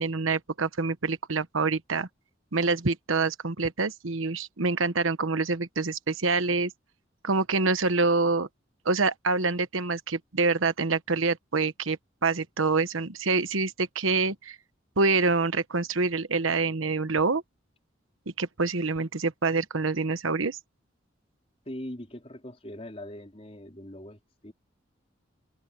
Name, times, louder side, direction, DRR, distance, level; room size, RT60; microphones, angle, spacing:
voice 1, 0.0-2.1 2.5-6.7 7.2-8.5 8.8-14.6 15.0-17.4 18.4-20.6, right 3 dB, 90° right, 1.2 m, -26 dB
voice 2, 21.7-24.5, left 1 dB, 30° left, 4.0 m, -41 dB
head